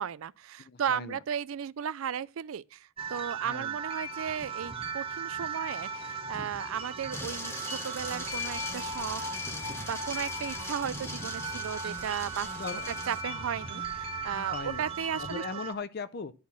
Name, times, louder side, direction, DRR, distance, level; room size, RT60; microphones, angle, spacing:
voice 1, 0.0-9.2 9.5-12.5 12.9-15.4, right 8 dB, 75° right, 0.4 m, -35 dB
voice 2, 0.6-1.2 3.4-3.8 12.6-13.0 14.5-14.8 15.2-16.3, left 4 dB, 50° left, 0.5 m, -38 dB
sound 1, 3.0-15.7, right 3 dB, 25° right, 0.9 m, -37 dB
sound 2, 7.1-13.2, left 1 dB, 10° left, 1.5 m, -41 dB
sound 3, 8.0-15.3, equal, 85° left, 6.2 m, -48 dB
11.5 x 4.3 x 6.9 m
head